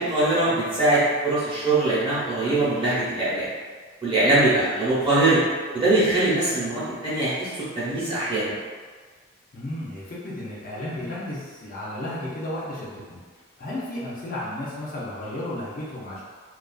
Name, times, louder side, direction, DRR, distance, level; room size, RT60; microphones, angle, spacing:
voice 1, 0.0-3.5 4.0-5.4 5.7-8.5, right 2 dB, 20° right, -11 dB, 0.8 m, -22 dB
voice 2, 9.5-13.2 13.6-16.2, left 1 dB, 40° left, -7 dB, 0.4 m, -33 dB
2.4 x 2.3 x 2.3 m, 1.5 s
head